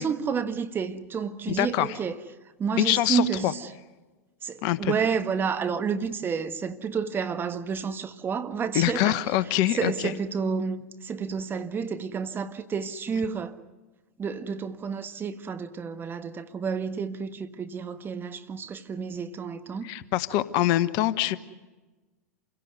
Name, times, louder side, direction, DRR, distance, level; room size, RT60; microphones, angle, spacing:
voice 1, 0.0-2.2 2.6-3.7 4.4-9.2 9.5-13.6 14.2-19.9, right 6 dB, 25° right, 1.5 m, -30 dB
voice 2, 1.5-1.9 2.8-3.5 4.6-4.9 8.7-10.1 19.8-21.4, left 14 dB, 50° left, 1.1 m, -24 dB
27.5 x 17.0 x 9.4 m
hypercardioid pair, 95°, 9 cm